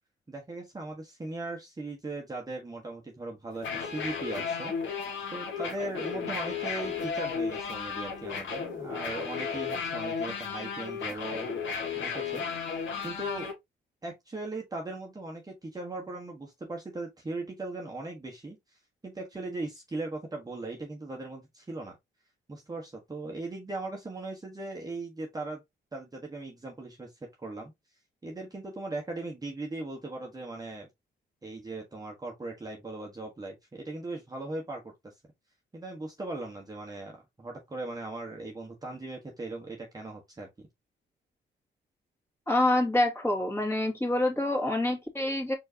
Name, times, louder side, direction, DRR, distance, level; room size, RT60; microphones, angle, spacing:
voice 1, 0.3-4.7 5.3-11.5 11.9-12.5 13.0-13.5 14.0-18.6 19.0-22.0 22.5-25.6 25.9-27.1 27.4-27.7 28.2-30.9 31.4-35.1 35.7-40.5, right 2 dB, 20° right, 1.3 m, -38 dB
sound 1, 3.5-13.5, left 6 dB, 75° left, 1.6 m, -34 dB
voice 2, 42.5-45.5, left 1 dB, 10° left, 2.2 m, -26 dB
4.5 x 4.0 x 2.8 m
cardioid pair, 90°, 20 cm